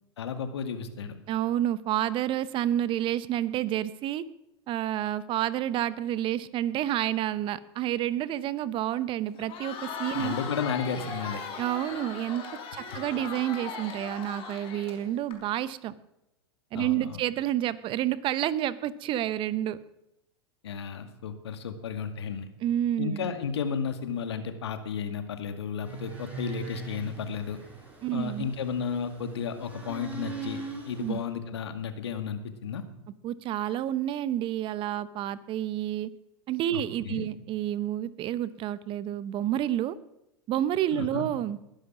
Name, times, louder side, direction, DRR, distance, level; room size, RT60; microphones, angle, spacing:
voice 1, 0.2-1.2 10.1-11.4 12.9-13.0 16.7-17.2 20.6-22.5 23.0-27.6 28.1-32.8 36.7-37.3 40.9-41.3, left 6 dB, 75° left, 8 dB, 2.1 m, -33 dB
voice 2, 1.3-4.2 4.7-10.3 11.6-12.4 12.7-15.9 16.7-19.8 22.6-23.3 28.0-28.5 31.0-31.2 33.2-36.1 36.5-40.0 40.5-41.6, right 12 dB, 40° right, 17 dB, 0.8 m, -29 dB
Crowd, 9.3-15.3, left 5 dB, 40° left, 5.4 m, -38 dB
sound 1, 25.8-31.2, right 4 dB, 10° right, 7.4 m, -42 dB
20.5 x 11.5 x 6.1 m, 0.88 s
hypercardioid pair, 100°, 14 cm